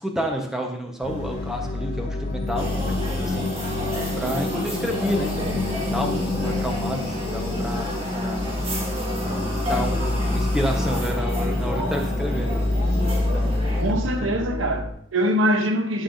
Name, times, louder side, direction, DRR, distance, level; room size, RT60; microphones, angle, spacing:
voice 1, 0.0-3.5 4.2-8.6 9.6-12.5 13.2-14.5, equal, ahead, 1.0 m, -30 dB
sound 1, 1.0-14.9, left 2 dB, 45° left, 2.1 m, -27 dB
sound 2, 2.6-13.8, equal, 30° right, 1.9 m, -30 dB
voice 2, 13.8-16.0, equal, 70° right, 0.9 m, -23 dB
13.0 x 5.5 x 2.6 m
head